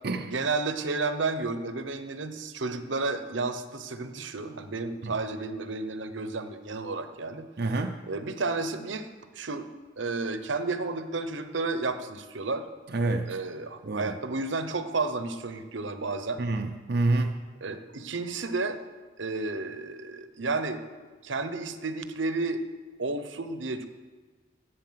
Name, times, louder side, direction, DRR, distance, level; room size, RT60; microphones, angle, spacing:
voice 1, 0.2-7.5 8.1-9.1 9.3-9.7 10.0-12.6 13.3-16.4 17.6-18.8 19.2-20.8 21.2-22.6 23.0-23.9, right 3 dB, 80° right, 10 dB, 0.9 m, -32 dB
voice 2, 7.6-8.0 12.9-13.3 13.9-14.1 16.4-17.4, right 2 dB, 55° right, 4 dB, 0.6 m, -27 dB
15.0 x 8.5 x 5.8 m, 1.4 s
head